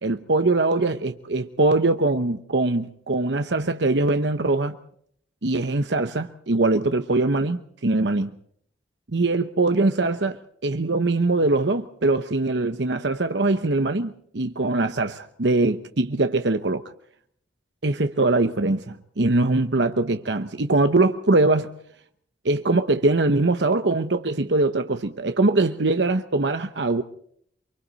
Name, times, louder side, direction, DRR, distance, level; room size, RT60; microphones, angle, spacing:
voice 1, 0.0-4.8 5.4-8.3 9.1-16.9 17.8-21.7 22.4-27.0, right 2 dB, 80° right, 1.0 m, -22 dB
29.0 x 24.5 x 4.1 m
head